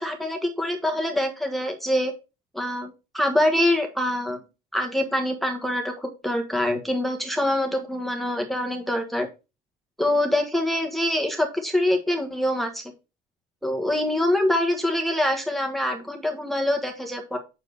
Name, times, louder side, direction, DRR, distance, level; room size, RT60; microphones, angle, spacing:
voice 1, 0.0-2.1 2.5-4.4 4.7-9.3 10.0-12.8 13.6-17.4, left 1 dB, ahead, 3 dB, 1.3 m, -25 dB
7.3 x 6.7 x 3.4 m, 0.28 s
cardioid pair, 120°, 18 cm